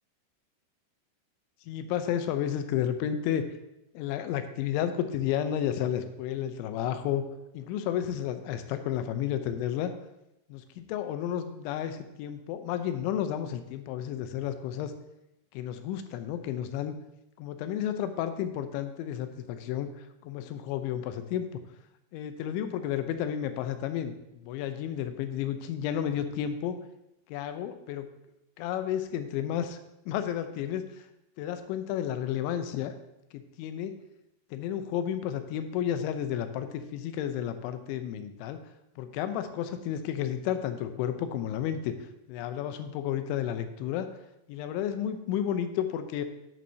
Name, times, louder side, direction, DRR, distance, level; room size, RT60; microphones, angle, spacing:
voice 1, 1.7-3.4 3.9-7.2 7.5-9.9 10.5-14.9 15.5-17.0 17.4-21.6 22.1-24.1 24.4-26.8 27.3-28.1 28.6-29.8 30.1-31.1 31.4-32.9 33.3-34.0 34.5-38.6 39.0-41.9 42.3-44.1 44.5-46.3, left 10 dB, 85° left, 9 dB, 3.1 m, -32 dB
10.5 x 8.4 x 2.7 m, 0.86 s
omnidirectional pair, 5.3 m